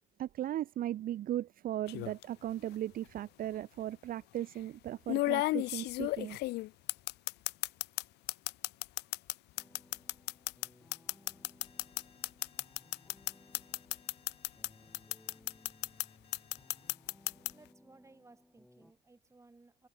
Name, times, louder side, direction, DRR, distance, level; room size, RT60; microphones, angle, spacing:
voice 1, 0.2-6.4, right 12 dB, 60° right, 0.9 m, -37 dB
sound 1, 1.9-2.2 3.4-3.5 5.1-8.0 8.3-14.7 14.9-16.1 16.3-17.5, left 19 dB, 85° left, 1.1 m, -33 dB
sound 2, 9.6-18.9, left 1 dB, 5° left, 3.9 m, -62 dB
Alarm, 11.6-16.9, left 6 dB, 35° left, 5.5 m, -65 dB
voice 2, 17.5-19.9, right 3 dB, 15° right, 6.5 m, -60 dB
cardioid pair, 110°, 17 cm